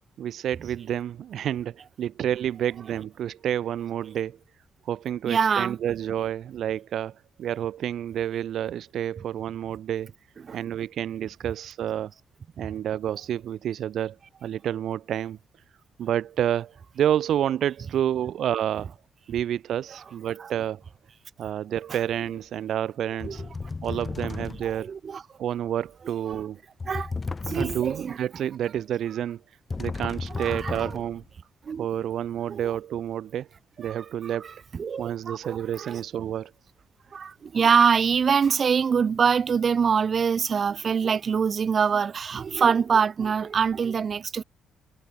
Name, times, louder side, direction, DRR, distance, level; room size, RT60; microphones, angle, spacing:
voice 1, 0.2-4.4 4.8-10.1 10.5-12.1 12.6-14.2 14.4-15.4 16.0-18.9 19.3-20.8 21.4-23.4 23.8-24.9 25.4-26.6 27.5-29.4 29.8-31.2 31.8-33.5 33.8-34.5 35.0-36.5, right 10 dB, 70° right, 1.7 m, -29 dB
voice 2, 5.2-5.8 10.4-10.6 18.8-18.9 20.4-20.5 21.9-22.0 23.2-23.5 24.6-25.2 26.0-26.3 26.9-27.1 27.5-28.2 29.1-29.2 30.3-31.0 31.7-31.9 32.5-32.8 33.8-36.0 37.1-44.4, right 6 dB, 45° right, 3.0 m, -25 dB
sound 1, 22.2-22.4 23.2-24.9 26.8-28.1 29.7-31.3, left 4 dB, 30° left, 2.8 m, -34 dB
cardioid pair, 90°, 0 cm